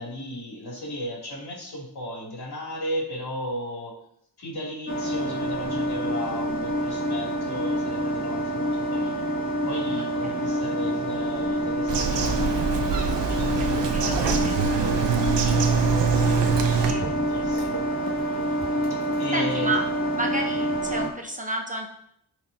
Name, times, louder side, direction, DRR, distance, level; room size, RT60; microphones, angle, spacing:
voice 1, 0.0-4.0 4.4-9.3 9.6-12.7 13.3-17.9 19.2-19.7, left 1 dB, 65° left, -3 dB, 2.9 m, -35 dB
sound 1, 4.9-21.1, equal, 30° left, 2.4 m, -27 dB
voice 2, 10.0-10.5 13.7-14.4 14.8-15.0 16.9-17.1 19.3-19.8 20.1-21.9, right 2 dB, 20° right, 2 dB, 0.9 m, -31 dB
Bird vocalization bird call bird song, 11.9-16.9, right 6 dB, 85° right, 0.9 m, -24 dB
12.5 x 4.8 x 2.8 m, 0.72 s
cardioid pair, 75°, 42 cm